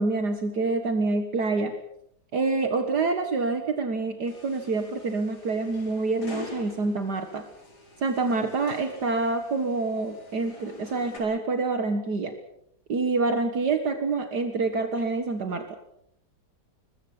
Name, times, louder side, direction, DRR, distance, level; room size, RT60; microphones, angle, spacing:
voice 1, 0.0-1.7 2.3-7.5 8.0-12.3 12.9-15.8, right 3 dB, 60° right, 6 dB, 2.2 m, -27 dB
sound 1, 4.3-11.2, left 3 dB, 60° left, 4.8 m, -45 dB
23.0 x 21.0 x 7.2 m, 0.76 s
omnidirectional pair, 2.0 m